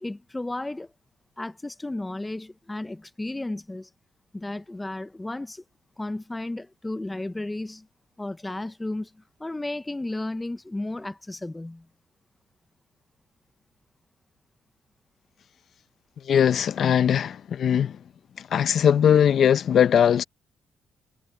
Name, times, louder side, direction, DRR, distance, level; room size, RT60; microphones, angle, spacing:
voice 1, 0.0-0.9 1.4-3.9 4.3-5.6 6.0-7.9 8.2-11.9, left 2 dB, 15° left, 0.7 m, -33 dB
voice 2, 16.3-18.0 18.4-20.2, left 8 dB, 60° left, 0.6 m, -20 dB
cardioid pair, 90°, 0 cm